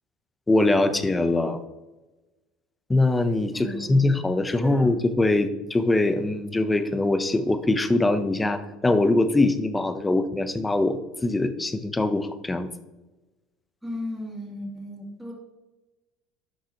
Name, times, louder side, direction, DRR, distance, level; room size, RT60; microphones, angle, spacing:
voice 1, 0.5-1.6 2.9-12.7, left 2 dB, 10° left, 11 dB, 0.6 m, -22 dB
voice 2, 3.5-4.1 4.5-4.9 13.8-15.3, left 1 dB, 5° right, -4 dB, 2.5 m, -35 dB
11.0 x 5.9 x 2.9 m, 1.1 s
supercardioid pair, 120°, 0 cm